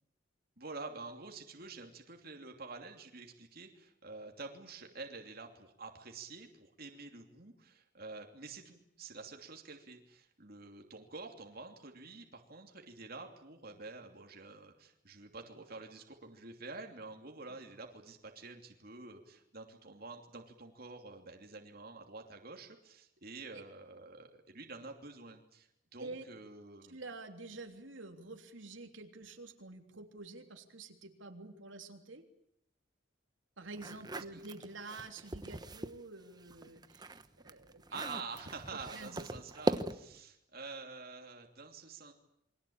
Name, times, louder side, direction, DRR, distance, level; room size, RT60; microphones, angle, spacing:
voice 1, 0.6-27.0 34.1-34.4 37.9-42.1, right 3 dB, 50° right, 3 dB, 2.9 m, -48 dB
voice 2, 26.9-32.2 33.6-37.8 38.7-39.3, right 3 dB, 75° right, 4 dB, 3.3 m, -48 dB
sound 1, 33.7-36.0 36.4-40.2, right 1 dB, 20° right, 1.0 m, -39 dB
28.5 x 23.5 x 8.8 m, 0.78 s
head